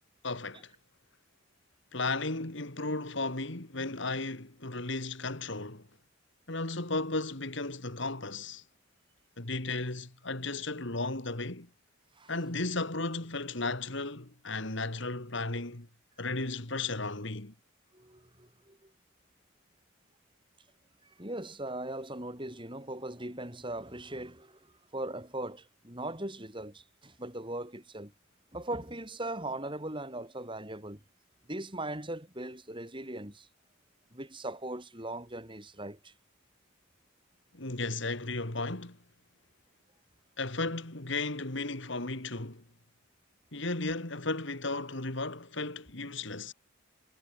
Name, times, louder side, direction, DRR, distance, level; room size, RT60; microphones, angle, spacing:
voice 1, 0.2-0.7 1.9-5.9 6.5-8.6 9.4-11.7 12.3-15.9 16.2-17.5 37.5-39.0 40.4-42.6 43.5-46.5, left 3 dB, 60° left, 2.6 m, -35 dB
voice 2, 17.9-18.9 21.0-28.1 28.5-31.0 31.5-33.5 34.1-36.1, right 1 dB, 25° right, 7.9 m, -39 dB
head